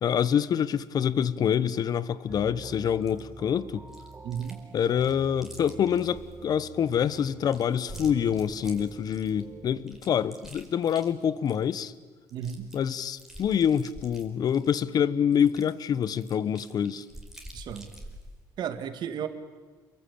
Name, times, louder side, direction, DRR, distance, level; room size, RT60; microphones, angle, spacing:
voice 1, 0.0-3.8 4.7-11.9 12.7-17.0, left 8 dB, 55° left, 17 dB, 1.1 m, -26 dB
sound 1, 2.3-9.9, right 4 dB, 25° right, 2.3 m, -46 dB
Chewing mastication, 3.1-3.2 3.9-4.6 4.9-6.4 6.9-9.4 9.9-11.7 12.0-12.1 12.3-14.8 15.3-18.3, equal, 5° right, 4.6 m, -47 dB
voice 2, 4.2-4.6 12.3-12.7 17.5-17.9 18.6-19.3, right 8 dB, 65° right, 8 dB, 2.4 m, -33 dB
29.0 x 22.5 x 8.8 m, 1.4 s
cardioid pair, 105°, 8 cm